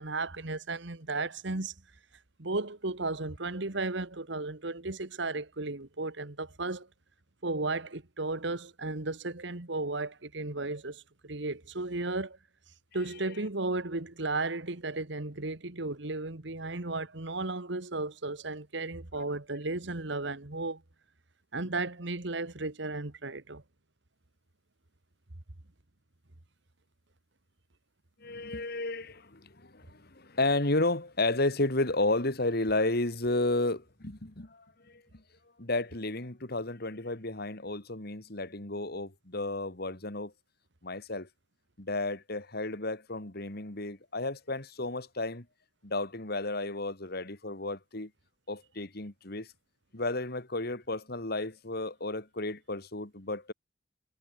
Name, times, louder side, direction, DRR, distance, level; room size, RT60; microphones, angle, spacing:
voice 1, 0.0-1.7 2.4-6.9 7.4-12.4 12.9-20.8 21.5-23.6, right 2 dB, 65° right, 1.8 m, -34 dB
voice 2, 28.2-35.2 35.6-40.3 40.8-41.3 41.8-45.5 45.8-48.1 48.5-49.5 49.9-53.5, left 2 dB, 55° left, 2.8 m, -32 dB
head